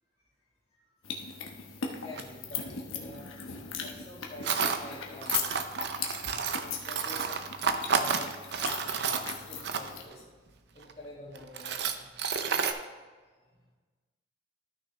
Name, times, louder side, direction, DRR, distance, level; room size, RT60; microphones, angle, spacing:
sound 1, 1.0-10.0, left 6 dB, 90° left, 1.1 m, -39 dB
voice 1, 1.6-3.3 3.8-5.6 6.6-7.4 7.9-10.2 10.7-12.4, left 1 dB, 35° left, -9 dB, 2.0 m, -48 dB
Tools, 2.2-2.3 4.4-4.8 5.2-10.1 10.8-10.9 11.4-12.7, right 6 dB, 55° right, 0.6 m, -30 dB
13.0 x 5.9 x 3.3 m, 1.4 s
head